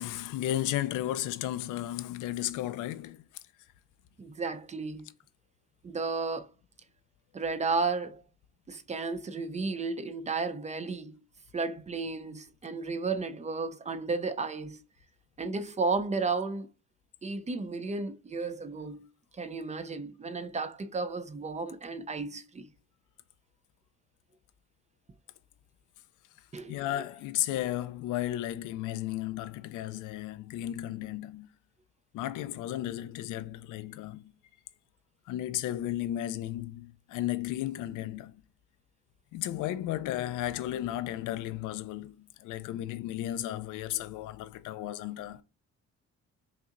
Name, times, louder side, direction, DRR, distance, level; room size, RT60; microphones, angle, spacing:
voice 1, 0.0-3.2 26.7-31.5 32.1-34.3 35.3-38.4 39.3-45.4, left 13 dB, 90° left, 0.5 m, -34 dB
voice 2, 4.2-5.1 5.8-6.5 7.3-8.2 8.7-11.2 11.5-14.8 15.4-16.7 17.2-19.1 19.3-22.7 26.5-26.7, right 4 dB, 25° right, 0.4 m, -33 dB
5.3 x 2.8 x 2.4 m
cardioid pair, 90°, 30 cm